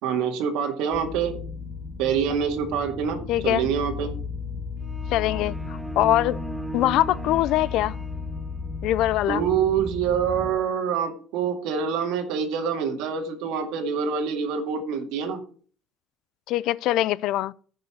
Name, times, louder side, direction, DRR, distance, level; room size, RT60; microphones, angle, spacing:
voice 1, 0.0-1.4 2.0-4.1 9.3-15.4, right 7 dB, 70° right, 2.0 m, -26 dB
sound 1, 0.9-10.5, left 4 dB, 30° right, 5.3 m, -35 dB
voice 2, 3.3-3.7 5.1-6.4 6.7-8.0 8.8-9.4 16.5-17.5, left 14 dB, 55° left, 0.4 m, -23 dB
sound 2, 4.8-8.8, right 2 dB, 5° right, 0.5 m, -38 dB
10.5 x 5.4 x 6.2 m
cardioid pair, 180°, 0 cm